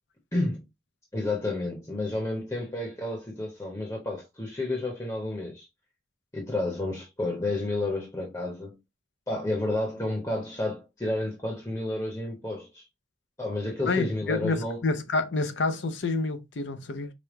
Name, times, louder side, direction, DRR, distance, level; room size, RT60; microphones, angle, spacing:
voice 1, 1.1-5.7 6.3-8.8 9.3-12.8 13.4-14.8, left 2 dB, 20° left, 0.9 m, -31 dB
voice 2, 13.9-17.1, left 3 dB, 80° left, 0.6 m, -28 dB
5.1 x 2.2 x 3.1 m
head